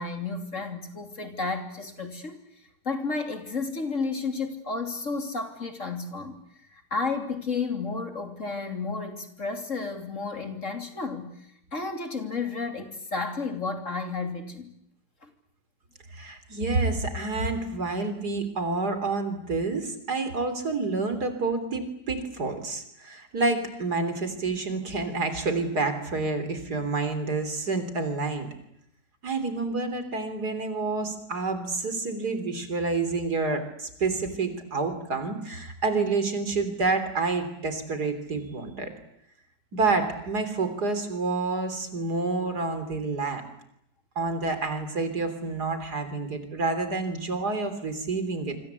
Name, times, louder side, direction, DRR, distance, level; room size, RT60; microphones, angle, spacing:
voice 1, 0.0-2.4 2.8-6.4 6.7-11.4 11.7-14.7 15.2-15.3 38.5-38.6, left 4 dB, 45° left, 5 dB, 3.3 m, -32 dB
voice 2, 16.1-28.5 29.2-38.9 39.7-43.4 44.2-48.6, right 3 dB, 65° right, 9 dB, 4.0 m, -28 dB
26.5 x 25.5 x 8.4 m, 0.76 s
omnidirectional pair, 1.8 m